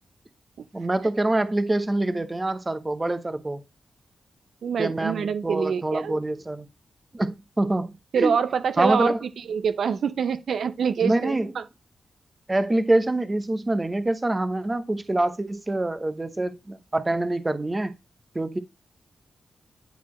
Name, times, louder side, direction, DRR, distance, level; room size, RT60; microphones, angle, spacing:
voice 1, 0.7-3.6 4.8-6.7 7.1-8.3 8.8-9.2 11.0-11.5 12.5-17.9 18.3-18.6, right 2 dB, 20° right, 0.9 m, -25 dB
voice 2, 4.6-6.1 8.1-9.1 9.5-11.6, right 7 dB, 80° right, 0.6 m, -25 dB
10.5 x 4.1 x 3.1 m
wide cardioid pair, 95°, 0 cm